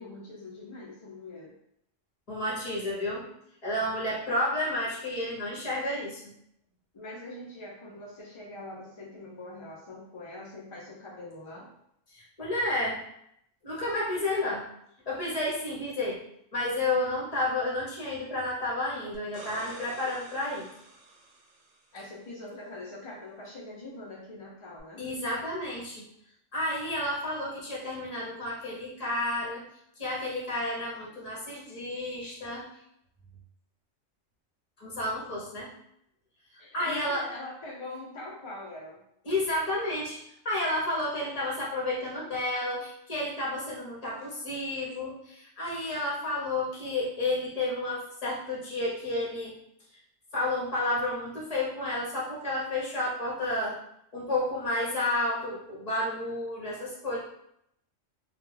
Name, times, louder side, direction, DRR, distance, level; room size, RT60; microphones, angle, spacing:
voice 1, 0.0-1.5 6.9-11.7 21.9-25.0 36.6-39.0, left 2 dB, 55° left, -4 dB, 0.3 m, -43 dB
voice 2, 2.3-3.3 3.6-6.3 12.1-13.0 13.6-14.7 15.1-16.2 16.5-20.7 25.0-26.1 26.5-29.6 30.0-32.7 34.8-35.7 36.5-37.3 39.3-40.2 40.4-49.5 50.3-53.8 54.1-57.2, left 1 dB, 40° left, -5 dB, 0.7 m, -31 dB
sound 1, 19.1-22.0 24.8-24.9, right 2 dB, 75° right, 1.0 m, -48 dB
2.2 x 2.2 x 3.1 m, 0.74 s
omnidirectional pair, 1.3 m